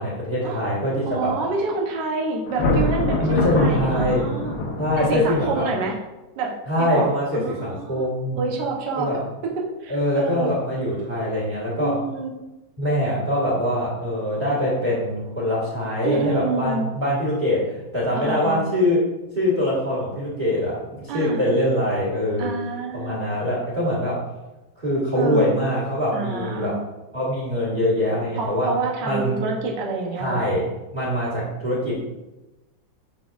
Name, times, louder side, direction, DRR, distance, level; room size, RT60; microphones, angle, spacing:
voice 1, 0.0-1.3 3.2-4.3 4.8-5.7 6.7-8.4 9.0-9.2 9.9-12.0 12.8-19.0 19.4-22.5 22.9-24.2 24.8-26.8 27.1-28.7 29.0-29.4 30.2-30.7 30.9-32.0, left 1 dB, 25° right, -8 dB, 2.0 m, -23 dB
voice 2, 1.0-4.5 5.0-6.0 6.4-6.5 6.8-7.1 7.3-8.1 8.4-9.1 9.4-9.5 9.8-10.5 11.8-12.3 16.0-16.9 18.1-18.6 21.1-21.5 22.4-23.2 25.1-25.5 26.1-26.8 28.3-30.6, right 3 dB, 65° right, -1 dB, 1.5 m, -28 dB
Thunder, 2.5-5.8, left 2 dB, 70° left, 1.6 m, -24 dB
11.0 x 4.0 x 2.6 m, 1.0 s
omnidirectional pair, 2.2 m